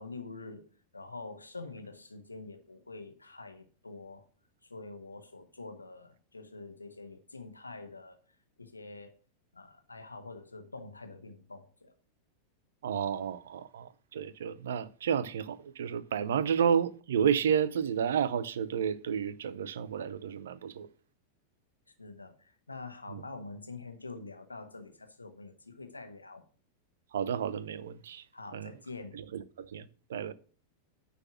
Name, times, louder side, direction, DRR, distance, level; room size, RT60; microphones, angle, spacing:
voice 1, 0.0-4.3 4.6-8.2 8.6-9.2 9.5-11.9 21.9-26.4 28.3-29.2, left 3 dB, 80° left, 1.2 m, -46 dB
voice 2, 12.8-20.9 23.1-23.2 27.1-28.2 28.5-28.7 29.1-30.3, right 8 dB, 60° right, 0.6 m, -31 dB
9.7 x 4.2 x 6.0 m
figure-of-eight pair, 90°, 0 cm